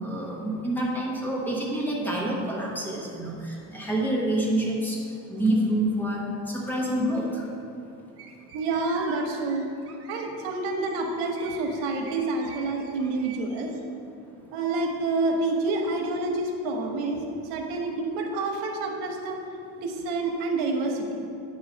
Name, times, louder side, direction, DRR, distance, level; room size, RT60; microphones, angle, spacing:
voice 1, 0.0-5.0 5.3-7.4, right 1 dB, 5° left, -3 dB, 1.0 m, -27 dB
sound 1, 8.2-13.8, right 5 dB, 40° right, 0.9 m, -47 dB
voice 2, 8.5-9.7 10.1-13.7 14.5-17.2 17.5-19.4 19.8-21.2, right 3 dB, 85° right, 1 dB, 1.1 m, -28 dB
8.8 x 3.1 x 5.1 m, 2.7 s
cardioid pair, 145°, 36 cm